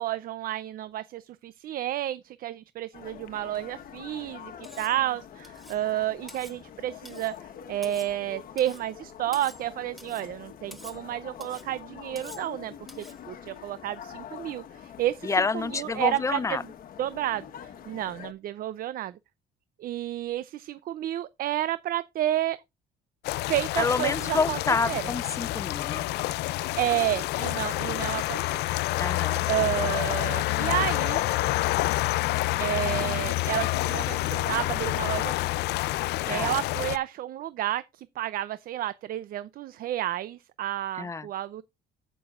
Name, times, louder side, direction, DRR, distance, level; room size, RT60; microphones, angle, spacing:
voice 1, 0.0-4.5 4.8-7.3 7.7-15.3 15.7-16.6 17.0-19.1 19.8-22.6 23.5-24.6 24.9-25.0 26.8-28.6 29.5-31.2 32.6-35.5 36.3-41.6, right 13 dB, 60° right, 0.6 m, -31 dB
sound 1, 2.9-18.3, left 9 dB, 60° left, 1.3 m, -45 dB
Cutlery silverware, 4.6-5.0 5.4-5.8 6.3-6.6 7.0-7.4 7.8-8.2 8.6-8.9 9.3-9.7 10.0-10.3 10.7-11.0 11.4-11.7 12.2-12.5 12.9-13.2, equal, ahead, 1.2 m, -48 dB
voice 2, 15.2-16.6 23.8-26.1 29.0-29.5 36.3-36.5 41.0-41.3, left 4 dB, 20° left, 0.5 m, -28 dB
sound 2, 23.2-37.0, left 18 dB, 80° left, 0.4 m, -28 dB
13.5 x 6.2 x 2.5 m
cardioid pair, 110°, 17 cm